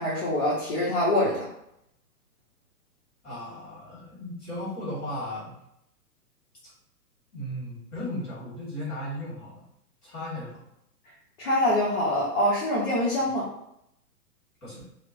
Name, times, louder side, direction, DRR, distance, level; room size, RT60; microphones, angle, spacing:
voice 1, 0.0-1.4 11.4-13.5, left 1 dB, 40° left, -6 dB, 0.7 m, -24 dB
voice 2, 3.2-5.5 6.6-6.7 7.3-9.6 10.0-10.5 13.2-13.3 14.6-14.9, left 1 dB, 20° left, -7 dB, 1.4 m, -36 dB
3.0 x 2.0 x 2.5 m, 0.78 s
figure-of-eight pair, 115°, 47 cm